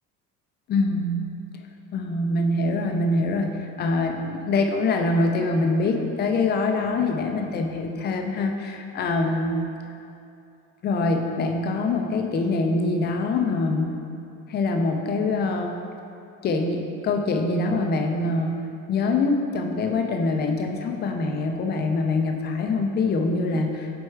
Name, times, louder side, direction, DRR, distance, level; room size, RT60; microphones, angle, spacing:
voice 1, 0.7-1.3 1.9-9.6 10.8-14.0 14.5-15.8 16.4-18.6 18.9-23.9, left 3 dB, 30° left, 3 dB, 0.5 m, -24 dB
4.8 x 4.3 x 4.5 m, 2.6 s
cardioid pair, 145°, 31 cm